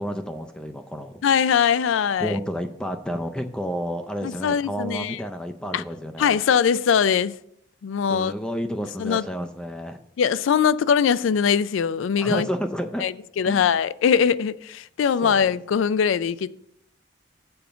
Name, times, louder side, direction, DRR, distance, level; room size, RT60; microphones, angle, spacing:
voice 1, 0.0-1.2 2.2-6.4 8.1-10.0 12.2-13.1 13.4-13.7 15.2-15.4, equal, 5° left, 0.4 m, -30 dB
voice 2, 1.2-2.4 4.2-5.2 5.7-5.8 6.2-7.3 7.8-8.3 9.0-9.2 10.2-12.5 13.0-16.5, left 7 dB, 85° left, 0.4 m, -21 dB
7.0 x 5.1 x 6.7 m
head